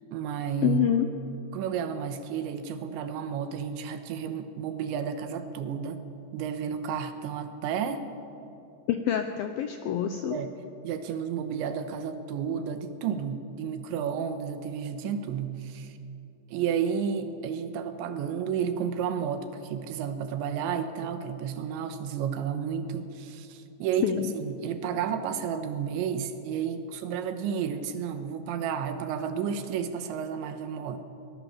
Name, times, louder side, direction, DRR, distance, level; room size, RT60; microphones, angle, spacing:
voice 1, 0.1-1.0 1.5-6.0 6.3-8.1 10.3-10.5 10.8-15.9 16.5-31.0, right 7 dB, 90° right, 8 dB, 3.4 m, -32 dB
voice 2, 0.6-1.1 8.9-10.4 24.0-24.3, left 10 dB, 80° left, 7 dB, 2.1 m, -26 dB
23.0 x 19.5 x 7.1 m, 2.8 s
omnidirectional pair, 5.2 m